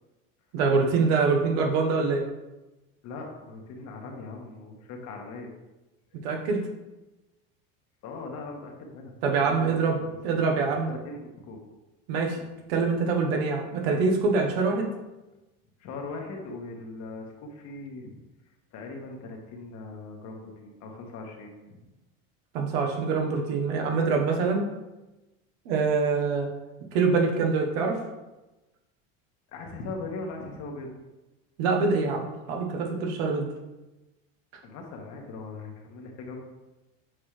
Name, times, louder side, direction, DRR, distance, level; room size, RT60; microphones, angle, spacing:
voice 1, 0.5-2.3 6.2-6.6 9.2-10.0 10.2-10.9 12.1-12.4 12.7-14.9 22.5-24.6 25.6-26.5 26.9-28.0 31.6-33.5, right 4 dB, 85° right, 2 dB, 1.3 m, -25 dB
voice 2, 3.0-5.5 8.0-9.1 9.5-10.1 10.9-11.6 15.8-18.1 18.7-21.8 29.5-30.9 34.6-36.4, left 3 dB, 60° left, 1 dB, 1.6 m, -40 dB
8.2 x 4.5 x 3.3 m, 1.0 s
supercardioid pair, 120°, 30 cm